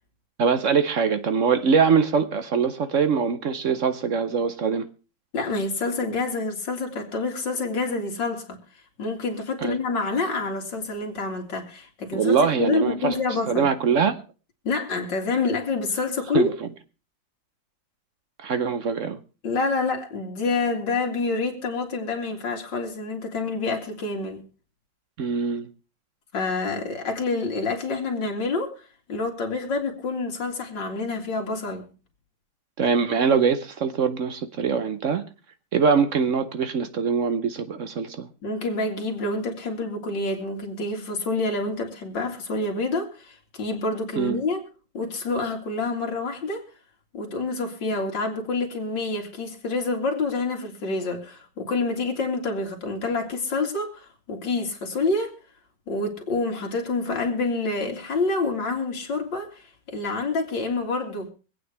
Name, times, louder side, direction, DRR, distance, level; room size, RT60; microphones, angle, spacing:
voice 1, 0.4-4.9 9.6-9.8 12.1-13.1 13.5-14.2 16.3-16.5 18.4-19.2 25.2-25.7 32.8-35.2 35.7-38.3 44.2-44.4, right 6 dB, 60° right, 0.9 m, -23 dB
voice 2, 5.3-8.6 9.0-13.7 14.6-16.5 19.4-24.4 26.3-28.8 29.1-31.9 38.4-44.6 44.9-46.6 47.1-55.3 55.9-61.3, left 3 dB, 70° left, 2.8 m, -27 dB
24.0 x 8.7 x 3.3 m
omnidirectional pair, 2.1 m